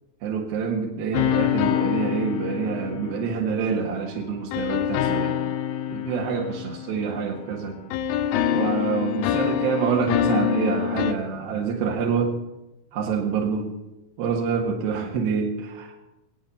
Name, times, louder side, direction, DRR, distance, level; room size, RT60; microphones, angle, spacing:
voice 1, 0.2-5.4 5.9-7.8 8.5-12.4 12.9-13.7 14.2-16.0, right 6 dB, 80° right, 0 dB, 3.5 m, -26 dB
sound 1, 1.1-3.8 4.5-7.6 7.9-11.1, left 10 dB, 85° left, 2.5 m, -26 dB
22.0 x 8.8 x 6.8 m, 0.95 s
omnidirectional pair, 4.2 m